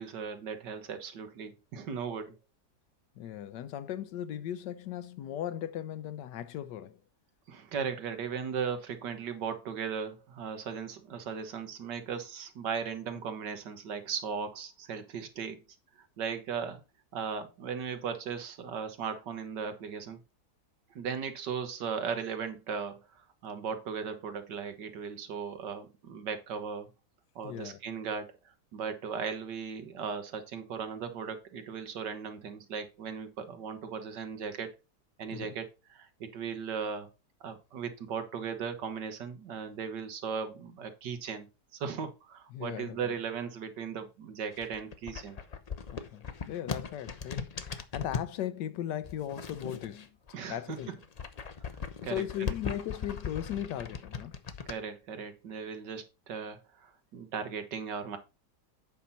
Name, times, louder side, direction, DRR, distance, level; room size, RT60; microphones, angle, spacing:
voice 1, 0.0-2.4 7.5-15.6 16.0-16.8 17.1-20.2 21.0-26.9 27.4-28.3 28.7-34.7 35.2-37.1 37.4-41.5 41.7-45.4 50.3-50.8 52.0-52.2 54.7-58.2, right 6 dB, 85° right, 1.8 m, -37 dB
voice 2, 3.2-7.0 27.4-27.8 35.3-35.5 42.5-43.1 45.9-50.1 50.5-50.9 51.8-54.4, left 11 dB, 85° left, 1.3 m, -37 dB
sound 1, 44.5-48.3 49.0-50.3 50.7-54.8, left 6 dB, 60° left, 0.4 m, -39 dB
8.4 x 5.7 x 4.1 m
omnidirectional pair, 1.8 m